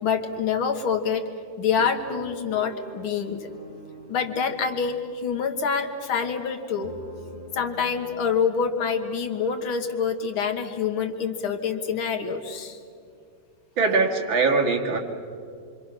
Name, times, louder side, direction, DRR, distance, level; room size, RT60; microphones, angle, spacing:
voice 1, 0.0-1.2 1.6-3.5 4.1-6.9 7.5-12.8, left 6 dB, 80° left, 6 dB, 2.3 m, -26 dB
sound 1, 1.8-9.9 10.5-10.6 10.8-11.1, right 2 dB, 20° right, 2.5 m, -45 dB
voice 2, 13.8-15.0, right 4 dB, 70° right, 0 dB, 3.0 m, -21 dB
27.0 x 25.5 x 6.0 m, 2.3 s
omnidirectional pair, 2.3 m